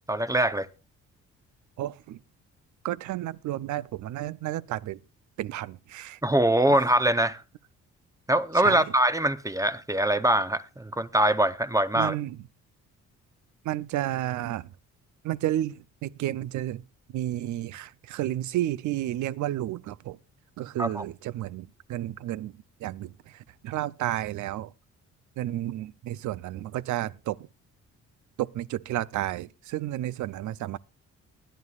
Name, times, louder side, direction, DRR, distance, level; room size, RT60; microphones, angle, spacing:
voice 1, 0.1-0.7 6.2-7.4 8.3-12.1 20.8-21.0, right 1 dB, 10° right, 0.6 m, -23 dB
voice 2, 1.8-2.2 2.8-5.0 5.4-6.2 8.6-8.9 11.9-12.4 13.6-14.7 15.2-16.8 17.1-20.2 20.6-22.5 22.8-23.1 23.6-24.7 25.4-27.4 28.4-30.8, right 14 dB, 75° right, 0.6 m, -31 dB
20.5 x 11.5 x 2.4 m
cardioid pair, 90°, 30 cm